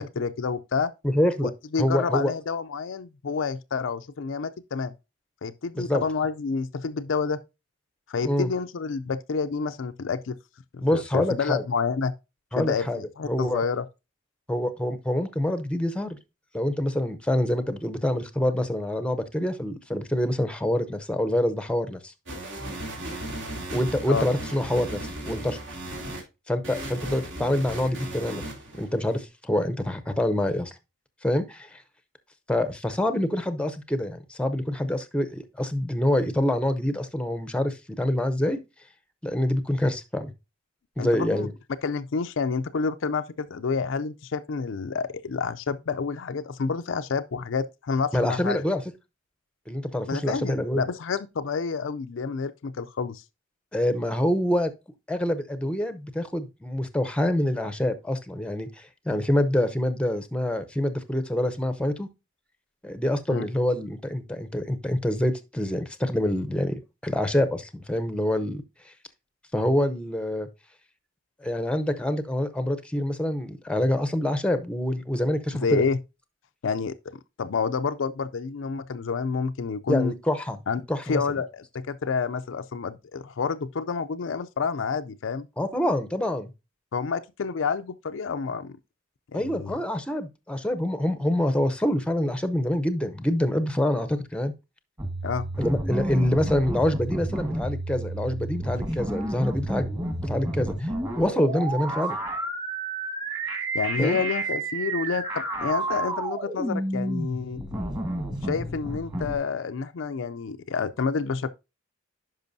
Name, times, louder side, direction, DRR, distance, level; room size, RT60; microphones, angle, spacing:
voice 1, 0.0-0.9 1.4-4.9 5.4-7.4 8.1-10.4 10.7-12.1 12.6-13.9 24.1-24.3 41.0-41.5 41.8-48.6 50.1-53.2 63.3-63.4 75.5-76.0 76.6-76.9 77.4-80.1 80.7-85.5 86.9-88.8 89.3-89.8 95.2-95.5 103.7-107.6 108.4-111.5, left 5 dB, 65° left, 0.4 m, -29 dB
voice 2, 1.0-1.5 1.8-2.3 5.7-6.0 8.2-8.5 10.8-11.6 12.5-13.0 13.3-13.6 14.5-16.2 16.5-22.1 23.7-25.6 26.5-28.4 28.8-30.7 31.2-31.8 32.5-38.6 39.2-40.3 41.0-41.5 48.1-48.8 49.7-50.8 53.7-54.7 55.1-62.1 62.8-68.9 69.5-70.5 71.4-75.8 79.9-80.6 80.9-81.2 85.6-86.5 89.3-94.5 95.6-100.9 101.1-102.2 104.0-104.2, left 1 dB, 5° left, 0.7 m, -26 dB
sound 1, 22.3-26.2 26.6-29.2, right 1 dB, 65° right, 2.7 m, -36 dB
sound 2, 95.0-109.4, right 1 dB, 20° right, 1.7 m, -30 dB
10.5 x 5.4 x 2.7 m
head